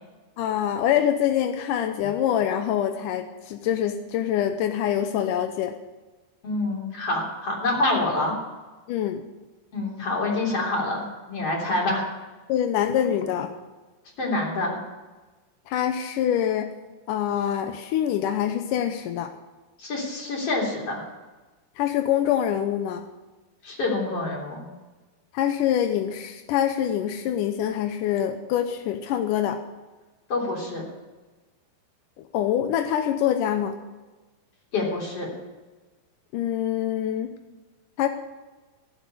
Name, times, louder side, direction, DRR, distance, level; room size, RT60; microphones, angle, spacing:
voice 1, 0.4-5.8 8.9-9.2 12.5-13.5 15.7-16.7 17.1-19.3 21.8-23.0 25.3-29.6 32.2-33.8 36.3-37.3 38.0-38.1, left 10 dB, 80° left, 7 dB, 1.9 m, -25 dB
voice 2, 6.4-8.4 9.7-12.0 14.2-14.8 19.8-21.0 23.6-24.6 30.3-30.8 34.7-35.3, left 2 dB, 40° left, -1 dB, 4.2 m, -26 dB
17.0 x 7.5 x 8.4 m, 1.2 s
omnidirectional pair, 4.7 m